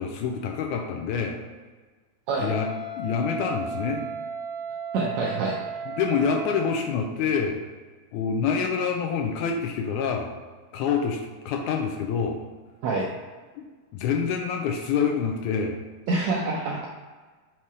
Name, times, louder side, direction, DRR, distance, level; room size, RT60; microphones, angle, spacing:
voice 1, 0.0-1.4 2.4-2.7 3.0-4.1 5.9-7.6 8.1-10.3 10.7-11.2 11.5-12.4 13.6-13.7 13.9-15.8, left 6 dB, 85° left, 3 dB, 1.8 m, -26 dB
Wind instrument woodwind instrument, 2.3-7.0, right 3 dB, 55° right, 1.8 m, -35 dB
voice 2, 4.9-5.6 12.8-13.1 16.1-16.9, right 3 dB, 80° right, -2 dB, 1.5 m, -26 dB
5.8 x 4.4 x 4.7 m, 1.4 s
omnidirectional pair, 4.0 m